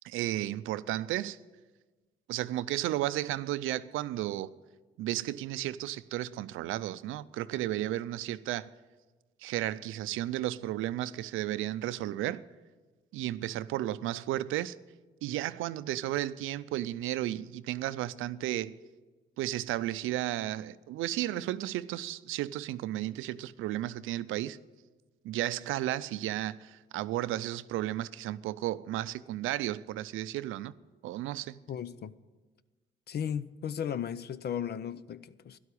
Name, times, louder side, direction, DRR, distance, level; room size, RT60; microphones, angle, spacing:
voice 1, 0.0-1.4 2.3-4.5 5.0-8.7 9.4-12.4 13.1-14.8 15.2-18.8 19.4-24.6 25.2-30.7 31.0-31.6, right 14 dB, 90° right, 0.5 m, -33 dB
voice 2, 31.7-32.1 33.1-35.6, left 8 dB, 55° left, 0.6 m, -35 dB
12.5 x 11.5 x 8.4 m
cardioid pair, 90°, 20 cm